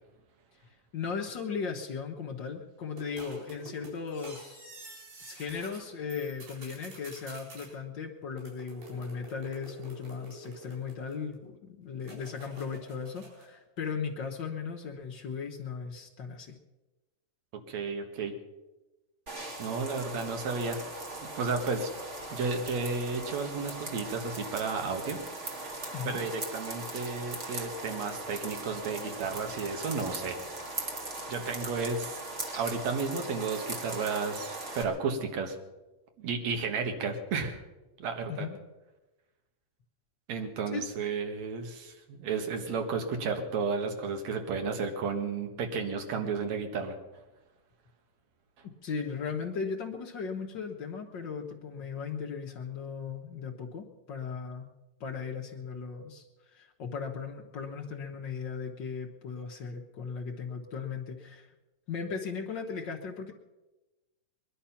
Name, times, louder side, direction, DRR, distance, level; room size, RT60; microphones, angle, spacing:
voice 1, 0.6-4.6 5.2-16.6 25.9-26.2 38.3-38.6 40.7-40.8 48.6-54.7 55.0-61.5 61.9-63.3, left 5 dB, 70° left, 1 dB, 1.0 m, -37 dB
sound 1, 3.0-5.8 6.1-7.7 8.4-11.3 12.0-13.5, right 2 dB, 85° right, 6.1 m, -48 dB
voice 2, 17.7-18.3 19.6-20.8 21.3-21.9 22.3-25.2 26.1-30.4 31.3-32.2 32.5-35.6 36.2-37.6 38.0-38.5 40.3-46.9, right 4 dB, 55° right, 5 dB, 2.7 m, -32 dB
sound 2, 19.3-34.8, right 2 dB, 30° right, 1.5 m, -39 dB
21.0 x 11.5 x 5.8 m, 1.1 s
omnidirectional pair, 3.9 m